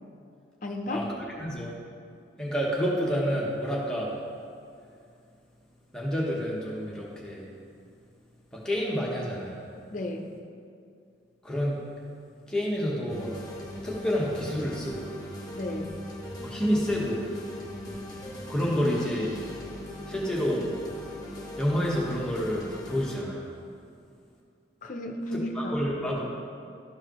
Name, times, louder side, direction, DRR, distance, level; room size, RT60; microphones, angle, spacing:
voice 1, 0.6-1.1 9.9-10.3 15.5-15.9 24.8-25.8, left 1 dB, 45° left, 3 dB, 0.6 m, -33 dB
voice 2, 1.4-1.7 2.4-4.1 5.9-7.4 8.5-9.7 11.4-11.9 12.5-13.3 13.8-15.2 16.4-17.2 18.5-19.3 20.1-20.7 21.6-23.5 25.3-26.3, equal, 5° left, -5 dB, 1.1 m, -29 dB
sound 1, 13.1-23.2, left 1 dB, 20° left, 1.2 m, -40 dB
12.5 x 4.8 x 3.0 m, 2.4 s
head